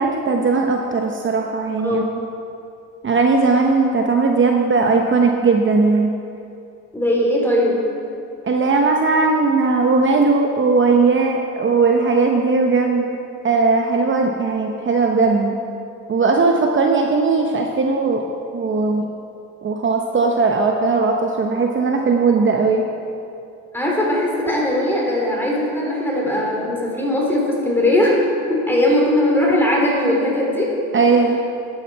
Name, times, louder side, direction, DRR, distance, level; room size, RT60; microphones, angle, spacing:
voice 1, 0.0-2.0 3.0-6.1 8.4-13.1 13.4-15.6 16.1-18.2 18.5-19.1 19.6-22.8 30.9-31.4, right 4 dB, 40° right, 2 dB, 0.9 m, -18 dB
voice 2, 6.9-7.8 23.7-28.2 28.5-30.7, left 1 dB, 5° left, -3 dB, 3.1 m, -19 dB
11.5 x 8.9 x 4.6 m, 2.6 s
cardioid pair, 90°, 30 cm